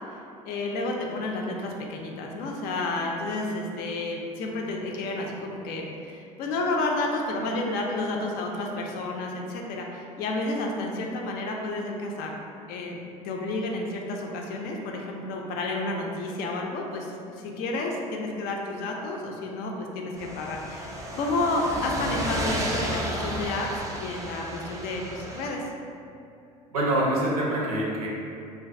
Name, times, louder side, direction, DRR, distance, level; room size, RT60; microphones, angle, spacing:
voice 1, 0.1-12.3 12.7-13.0 13.2-25.6, left 2 dB, 55° left, 0 dB, 0.4 m, -31 dB
sound 1, 20.2-25.5, right 1 dB, 15° right, 0.4 m, -33 dB
voice 2, 26.7-28.1, right 1 dB, 85° right, -4 dB, 0.6 m, -25 dB
2.5 x 2.3 x 2.5 m, 2.6 s
hypercardioid pair, 70°, 18 cm